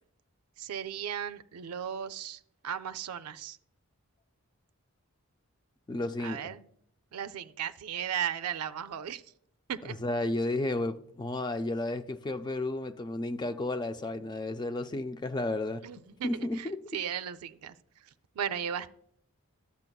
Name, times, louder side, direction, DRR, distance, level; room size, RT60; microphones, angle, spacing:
voice 1, 0.6-3.6 6.2-6.7 7.1-9.2 9.7-10.0 15.8-17.7 18.4-18.9, right 9 dB, 90° right, 0.4 m, -36 dB
voice 2, 5.9-6.5 10.0-15.8 16.2-16.8, left 2 dB, 20° left, 0.3 m, -32 dB
12.0 x 8.2 x 2.3 m
head